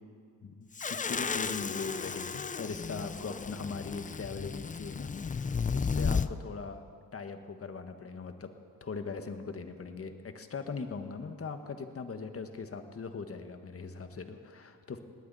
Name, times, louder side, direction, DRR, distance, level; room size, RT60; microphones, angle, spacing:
voice 1, 0.4-6.8 7.1-8.5 8.8-15.0, left 4 dB, 40° left, 7 dB, 1.5 m, -40 dB
sound 1, 0.8-6.3, left 5 dB, 20° left, 0.5 m, -34 dB
18.5 x 18.5 x 4.2 m, 2.2 s
cardioid pair, 80°, 37 cm